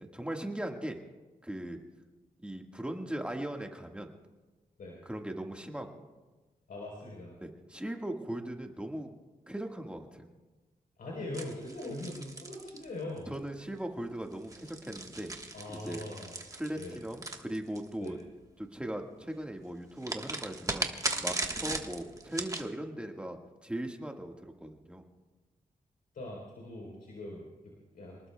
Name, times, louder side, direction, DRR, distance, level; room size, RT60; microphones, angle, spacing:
voice 1, 0.1-1.0 1.4-1.8 2.4-4.1 5.0-6.0 7.4-9.1 9.5-10.2 13.3-15.3 15.8-16.0 16.5-18.2 18.6-20.9 21.2-25.0, right 1 dB, 5° right, 3 dB, 1.7 m, -39 dB
voice 2, 6.7-7.4 11.0-13.3 15.5-16.3 16.8-17.0 18.0-18.1 26.1-28.3, left 1 dB, 85° left, -3 dB, 4.0 m, -41 dB
sound 1, 11.3-13.3 14.3-18.1 20.0-22.7, right 2 dB, 25° right, 1.4 m, -37 dB
28.0 x 19.5 x 2.3 m, 1.2 s
wide cardioid pair, 95°, 15 cm